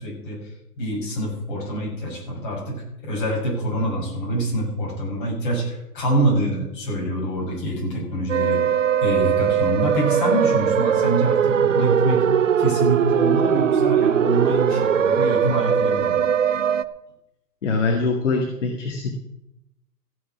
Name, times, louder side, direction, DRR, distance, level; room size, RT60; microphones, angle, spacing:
voice 1, 0.0-12.2 12.6-16.2, right 1 dB, 30° left, -4 dB, 6.3 m, -25 dB
sound 1, 8.3-16.8, right 8 dB, 50° right, 0.6 m, -20 dB
voice 2, 17.6-19.2, left 3 dB, 45° left, 2 dB, 2.0 m, -23 dB
15.5 x 7.4 x 7.0 m, 0.83 s
hypercardioid pair, 175°, 48 cm